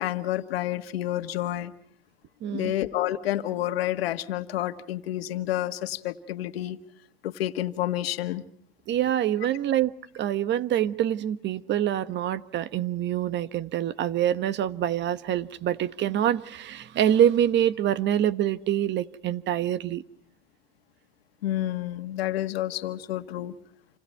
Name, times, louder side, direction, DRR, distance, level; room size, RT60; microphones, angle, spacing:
voice 1, 0.0-1.7 2.5-6.8 7.2-8.4 21.4-23.6, left 13 dB, 90° left, 9 dB, 1.8 m, -29 dB
voice 2, 2.4-2.7 8.9-20.0, right 11 dB, 40° right, 14 dB, 1.3 m, -25 dB
29.0 x 26.0 x 4.6 m, 0.62 s
supercardioid pair, 120°, 29 cm